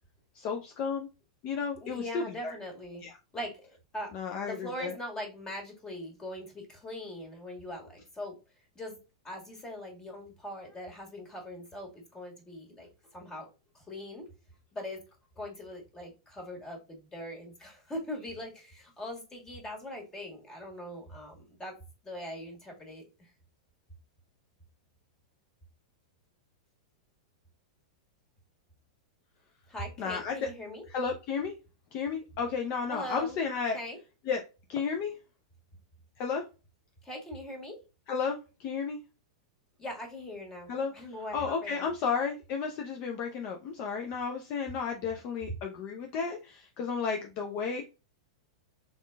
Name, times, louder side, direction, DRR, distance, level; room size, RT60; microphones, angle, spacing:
voice 1, 0.3-1.1 1.4-2.5 3.0-3.1 4.1-4.9 30.0-30.5 30.9-31.5 31.9-33.8 34.3-34.4 34.7-35.1 36.2-36.4 38.1-39.0 40.7-40.9 41.3-47.8, left 5 dB, 45° left, 3 dB, 0.6 m, -33 dB
voice 2, 1.8-3.1 3.3-8.4 8.8-9.0 9.2-14.3 14.7-15.0 15.4-21.8 22.0-23.3 29.7-30.8 32.9-33.4 33.7-34.0 37.0-37.8 39.8-41.9, equal, 20° left, 1 dB, 1.8 m, -41 dB
3.8 x 3.6 x 2.3 m, 0.30 s
hypercardioid pair, 105°, 3 cm